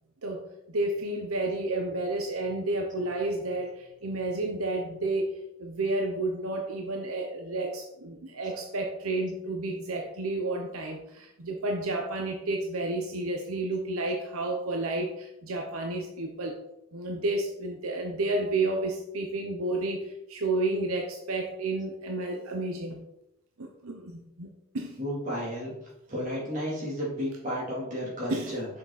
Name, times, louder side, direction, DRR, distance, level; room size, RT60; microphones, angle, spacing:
voice 1, 0.2-5.3 5.6-16.6 16.9-23.0 23.6-25.0 28.3-28.6, right 2 dB, 75° right, 2 dB, 0.9 m, -31 dB
voice 2, 25.0-25.7 26.1-28.7, equal, 35° right, -5 dB, 3.1 m, -32 dB
6.8 x 5.8 x 4.1 m, 0.85 s
head